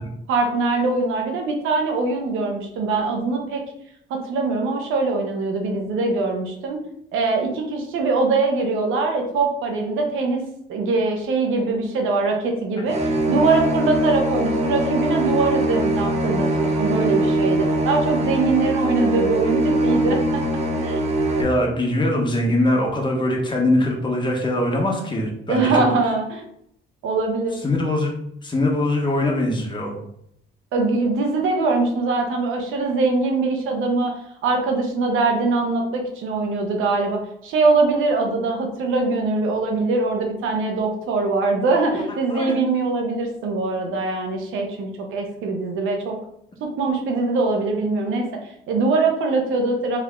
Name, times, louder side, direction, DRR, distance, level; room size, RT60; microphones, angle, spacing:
voice 1, 0.3-3.6 4.1-6.8 7.1-10.4 10.7-20.4 20.8-21.1 25.5-26.4 27.0-27.5 30.7-34.1 34.4-46.2 46.6-50.0, right 3 dB, 90° right, 2 dB, 1.0 m, -22 dB
sound 1, 12.9-21.4, right 1 dB, 35° right, 1.0 m, -22 dB
voice 2, 21.4-25.8 27.6-28.1 28.4-30.0 41.9-42.0 42.3-42.5, left 1 dB, 25° left, -1 dB, 1.3 m, -22 dB
3.6 x 3.4 x 3.6 m, 0.72 s
cardioid pair, 90°, 20 cm